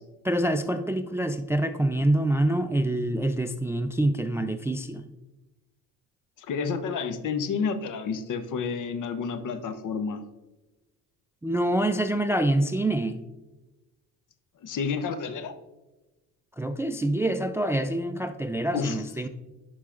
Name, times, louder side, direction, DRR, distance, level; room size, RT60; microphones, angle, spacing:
voice 1, 0.2-5.0 11.4-13.2 16.6-19.3, right 1 dB, 10° right, 9 dB, 0.3 m, -26 dB
voice 2, 6.4-10.2 14.6-15.5 18.7-19.0, left 5 dB, 55° left, 10 dB, 0.8 m, -30 dB
11.0 x 4.8 x 2.5 m, 1.1 s
supercardioid pair, 80°, 36 cm